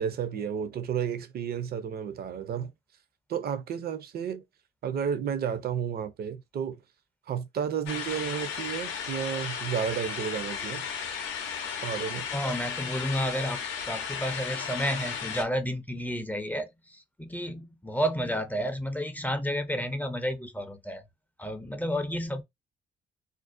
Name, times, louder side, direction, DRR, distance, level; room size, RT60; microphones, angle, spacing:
voice 1, 0.0-2.7 3.3-4.4 4.8-6.8 7.3-10.9 11.8-12.3, right 8 dB, 50° right, 0.5 m, -32 dB
sound 1, 7.9-15.4, left 7 dB, 90° left, 0.6 m, -35 dB
voice 2, 12.3-21.0 21.4-22.4, equal, 10° left, 0.4 m, -31 dB
2.5 x 2.0 x 2.4 m
cardioid pair, 90°, 20 cm